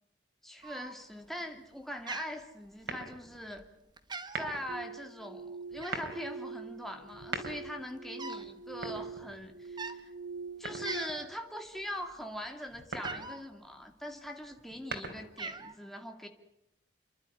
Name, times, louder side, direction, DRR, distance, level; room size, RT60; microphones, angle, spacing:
voice 1, 0.4-3.7 4.3-10.1 10.6-16.3, equal, ahead, 4 dB, 2.5 m, -42 dB
Cat, 0.6-1.3 1.6-1.8 2.1-3.1 3.6-3.7 4.0-4.6 5.8-6.2 7.0-7.1 7.3-8.5 8.8-9.0 9.7-10.0 10.5-10.6 10.9-11.4 11.8-13.5 14.3-14.8 15.1-15.7, right 3 dB, 25° right, 1.3 m, -43 dB
sound 1, 2.8-3.4 4.2-4.8 5.7-6.2 7.1-7.9 8.7-9.6 10.6-11.3 12.7-13.3 14.6-15.5, right 3 dB, 80° right, 3.8 m, -41 dB
sound 2, 4.7-11.0, right 4 dB, 55° right, 1.4 m, -44 dB
29.5 x 12.0 x 9.8 m, 0.84 s
head